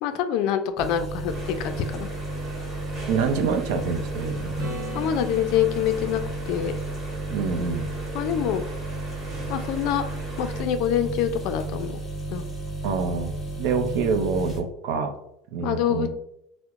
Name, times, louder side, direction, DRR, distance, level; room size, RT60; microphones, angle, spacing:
voice 1, 0.0-2.1 4.9-6.2 6.5-6.8 8.1-8.6 9.5-10.1 10.4-12.0 12.3-12.4 15.6-16.1, left 9 dB, 55° left, 8 dB, 0.3 m, -25 dB
sound 1, 0.8-14.6, right 2 dB, 5° left, 0.6 m, -33 dB
sound 2, 1.3-10.6, right 2 dB, 25° right, 1.4 m, -40 dB
voice 2, 3.1-4.5 7.3-7.9 12.8-15.1 15.5-16.1, right 5 dB, 65° right, 6 dB, 0.5 m, -26 dB
Acoustic guitar / Strum, 4.6-8.3 13.2-13.3, equal, 50° right, 1.3 m, -40 dB
4.5 x 2.0 x 2.4 m, 0.78 s
cardioid pair, 160°, 0 cm